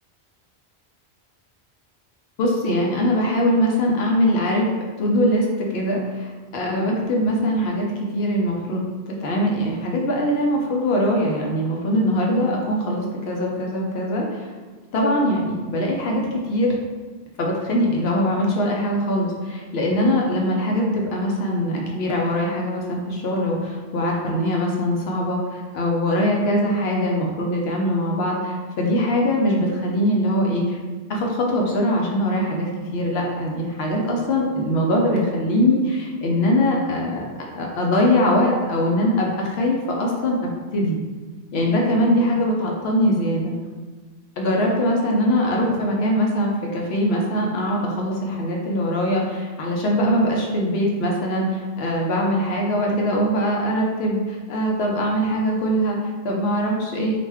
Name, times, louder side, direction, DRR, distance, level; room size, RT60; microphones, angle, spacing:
voice 1, 2.4-4.7 5.0-5.5 5.7-7.9 8.1-14.5 14.9-16.2 16.5-16.7 17.4-30.8 31.1-37.2 37.6-40.4 40.7-41.0 41.5-43.5 44.4-56.0 56.2-57.1, equal, 75° left, -1 dB, 0.8 m, -22 dB
2.4 x 2.2 x 3.4 m, 1.4 s
omnidirectional pair, 1.1 m